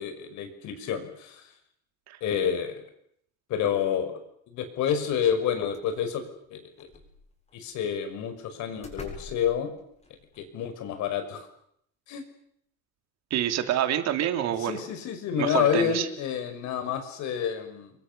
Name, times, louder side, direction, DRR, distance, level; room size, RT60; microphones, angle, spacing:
voice 1, 0.0-1.4 2.2-2.8 3.5-4.2 4.5-6.2 6.5-6.9 7.5-9.7 10.4-11.5 12.1-12.2 14.6-17.9, left 8 dB, 65° left, 8 dB, 5.9 m, -29 dB
sound 1, 5.4-5.5 5.7-6.2 6.7-7.6 8.3-8.4 8.8-10.4, left 3 dB, 20° left, 7.7 m, -45 dB
voice 2, 13.3-14.8 15.4-16.1, right 11 dB, 60° right, 8 dB, 3.2 m, -27 dB
29.5 x 23.0 x 7.0 m, 0.69 s
cardioid pair, 140°, 31 cm